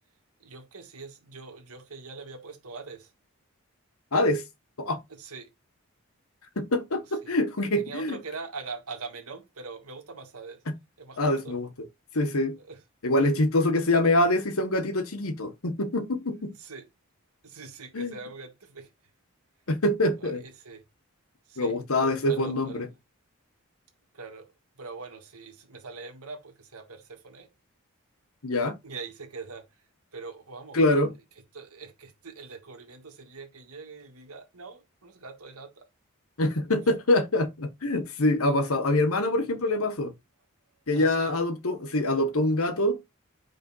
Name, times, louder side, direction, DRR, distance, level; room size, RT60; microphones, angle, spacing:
voice 1, 0.4-3.1 5.1-5.5 7.2-7.4 7.8-10.6 11.0-11.6 12.6-12.8 16.6-16.9 17.4-18.9 20.2-20.8 21.5-22.8 24.1-24.5 24.8-27.5 28.8-29.9 30.1-31.0 31.5-35.9 40.9-41.3, right 4 dB, 90° right, 1.8 m, -43 dB
voice 2, 4.1-4.4 4.8-5.0 6.6-8.2 11.2-11.7 12.1-12.6 13.0-16.5 17.9-18.1 19.7-20.4 21.6-22.9 28.4-28.8 30.7-31.1 36.4-40.1 40.9-43.0, left 1 dB, 75° left, 1.2 m, -25 dB
5.4 x 3.5 x 5.5 m
head